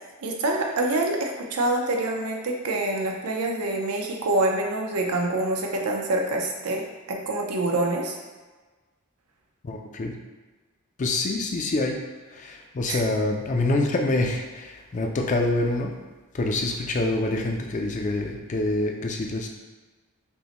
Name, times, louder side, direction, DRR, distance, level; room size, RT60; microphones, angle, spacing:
voice 1, 0.2-6.8 7.1-8.2 12.9-13.0, right 2 dB, 90° right, 1 dB, 0.6 m, -26 dB
voice 2, 9.6-10.1 11.0-12.0 12.3-15.9 16.3-19.5, left 2 dB, 35° left, 2 dB, 0.4 m, -26 dB
5.3 x 2.1 x 2.9 m, 1.3 s
head